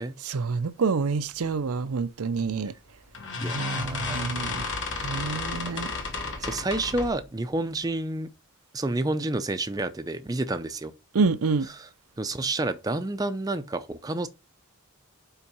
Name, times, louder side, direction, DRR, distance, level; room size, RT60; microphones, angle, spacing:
voice 1, 0.2-2.7 3.5-4.7 5.0-5.9 11.1-11.7, right 4 dB, 85° right, 0.5 m, -27 dB
sound 1, 2.4-2.7 3.1-7.2, left 3 dB, 55° left, 1.4 m, -32 dB
voice 2, 3.4-5.1 5.6-5.9 6.4-8.3 8.7-10.9 11.7-11.9 12.2-14.3, right 2 dB, 15° right, 0.5 m, -30 dB
5.6 x 4.5 x 5.4 m
head